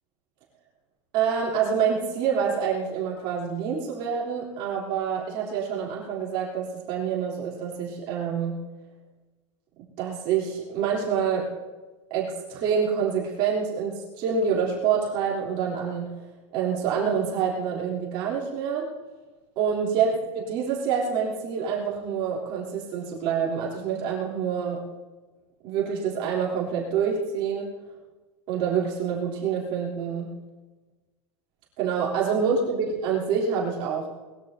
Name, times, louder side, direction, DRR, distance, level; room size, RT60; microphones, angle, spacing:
voice 1, 1.1-8.6 10.0-11.5 12.1-16.1 16.5-18.9 19.5-24.8 25.6-27.7 28.5-30.3 31.8-34.1, right 7 dB, 35° right, -4 dB, 3.4 m, -27 dB
21.0 x 15.5 x 2.8 m, 1.2 s
supercardioid pair, 180°, 16 cm